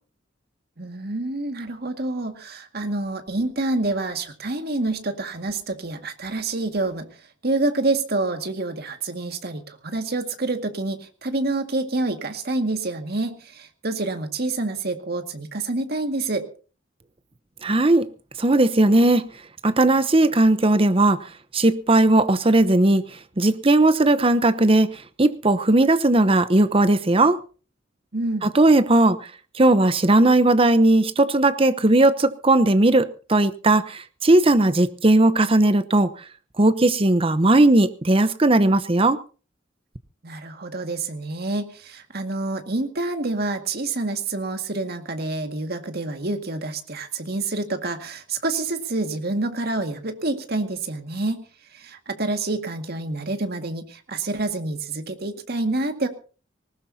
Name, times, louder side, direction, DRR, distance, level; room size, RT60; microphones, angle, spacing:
voice 1, 0.8-7.1 7.4-16.5 28.1-28.5 40.2-51.4 51.7-56.1, right 2 dB, 55° right, 2.0 m, -27 dB
voice 2, 17.6-18.1 18.4-19.3 19.6-21.2 21.5-23.0 23.4-27.4 28.4-29.2 29.6-36.1 36.6-39.2, right 2 dB, 30° right, 0.9 m, -17 dB
20.0 x 19.0 x 2.8 m
head